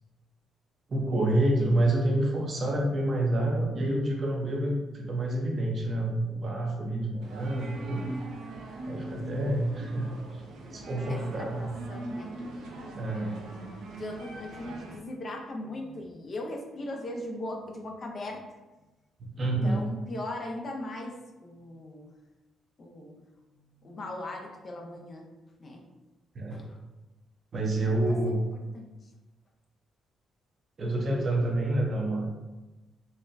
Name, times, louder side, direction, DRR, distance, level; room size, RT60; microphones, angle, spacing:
voice 1, 0.9-8.0 8.9-10.4 10.7-11.7 13.0-13.4 19.4-19.9 26.3-26.6 27.5-28.5 30.8-32.3, right 1 dB, 45° right, 0 dB, 0.7 m, -28 dB
sound 1, 7.2-15.0, right 2 dB, 90° right, 0.5 m, -41 dB
voice 2, 10.5-12.4 12.6-12.9 14.0-18.4 19.3-22.1 22.8-23.2 23.6-25.3 25.6-25.8 26.5-26.8 28.0-28.4 28.7-29.1, left 1 dB, 45° left, 1 dB, 0.5 m, -39 dB
4.1 x 2.2 x 2.5 m, 1.1 s
cardioid pair, 90°, 0 cm